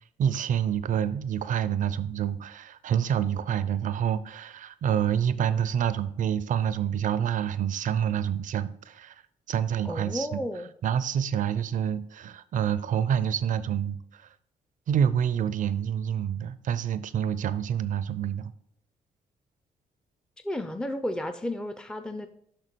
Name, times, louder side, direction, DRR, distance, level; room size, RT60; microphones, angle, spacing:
voice 1, 0.2-9.1 9.5-10.4 10.8-14.3 14.9-18.5, right 9 dB, 65° right, 0.5 m, -27 dB
voice 2, 9.8-10.7 20.4-22.3, left 1 dB, 5° left, 0.6 m, -32 dB
6.7 x 5.9 x 4.5 m
cardioid pair, 75°, 14 cm